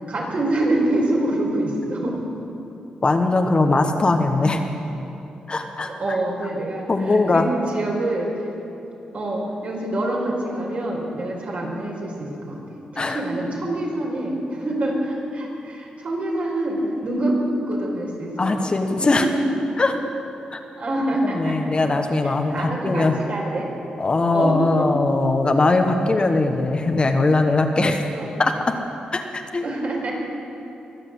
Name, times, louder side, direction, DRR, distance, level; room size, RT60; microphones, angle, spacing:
voice 1, 0.1-2.2 5.9-7.4 7.7-8.5 9.1-12.6 12.9-17.4 17.7-18.7 19.0-19.4 20.8-21.7 22.2-23.7 24.3-24.9 28.1-28.4 29.6-30.1, right 1 dB, 60° right, -2 dB, 4.7 m, -26 dB
voice 2, 3.0-4.6 5.5-6.2 6.9-7.5 13.0-13.2 18.4-19.3 19.8-20.0 20.5-20.6 21.2-23.2 24.0-28.1 28.4-28.7 29.1-29.6, left 3 dB, 35° left, 5 dB, 1.3 m, -20 dB
22.5 x 7.7 x 7.9 m, 2.8 s
cardioid pair, 70°, 3 cm